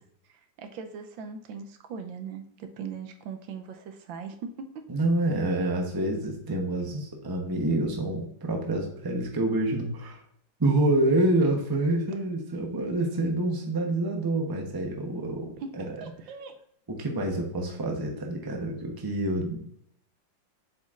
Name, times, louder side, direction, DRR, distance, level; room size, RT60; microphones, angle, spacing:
voice 1, 0.3-4.7 15.6-15.7 16.0-16.6, right 6 dB, 80° right, 6 dB, 1.4 m, -40 dB
voice 2, 4.9-10.2 10.6-16.0 16.9-19.6, right 1 dB, 20° right, 1 dB, 0.6 m, -27 dB
7.5 x 5.3 x 2.5 m, 0.68 s
omnidirectional pair, 2.1 m